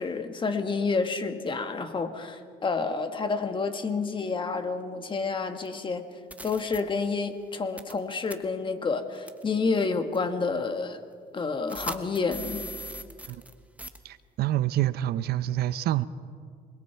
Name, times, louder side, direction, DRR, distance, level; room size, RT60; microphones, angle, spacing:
voice 1, 0.0-6.0 6.4-11.0 11.3-12.6, left 4 dB, 30° left, 7 dB, 1.6 m, -29 dB
sound 1, 5.7-5.8 6.3-6.8 7.8-8.0 8.3-8.4 9.3-9.4 10.1-10.2 11.7-13.5 13.8-14.0, equal, 10° right, 1.2 m, -39 dB
voice 2, 14.0-16.1, right 13 dB, 70° right, 16 dB, 0.6 m, -27 dB
27.5 x 21.0 x 4.6 m, 2.1 s
cardioid pair, 110°, 17 cm